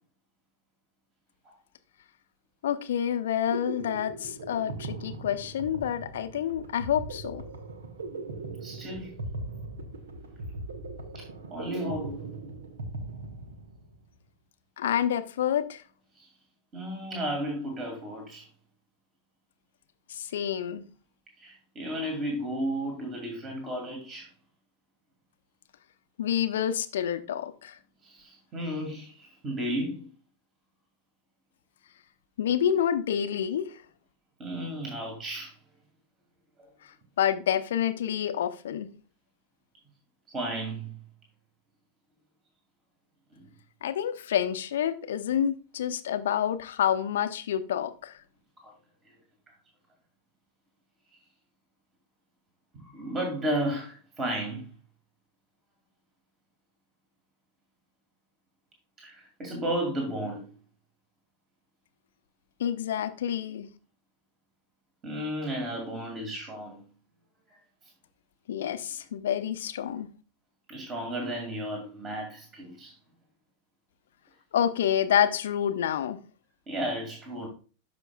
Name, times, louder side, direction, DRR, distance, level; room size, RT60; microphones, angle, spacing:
voice 1, 2.6-7.4 14.8-15.8 20.1-20.8 26.2-27.8 32.4-33.8 37.2-38.9 43.8-48.2 62.6-63.7 68.5-70.1 74.5-76.2, left 9 dB, 60° left, 0.7 m, -28 dB
sound 1, 3.2-14.0, right 3 dB, 65° right, 1.1 m, -39 dB
voice 2, 8.6-9.1 11.1-11.2 11.5-12.2 16.2-16.3 16.7-18.4 21.4-24.3 28.0-30.1 34.4-35.5 40.3-41.0 43.3-43.4 45.4-45.5 48.6-48.7 49.0-49.1 52.7-54.7 59.0-60.5 65.0-66.8 67.5-67.6 70.7-72.9 76.7-77.5, right 1 dB, 25° right, 2.2 m, -33 dB
12.5 x 5.2 x 2.3 m
figure-of-eight pair, 90°, 0 cm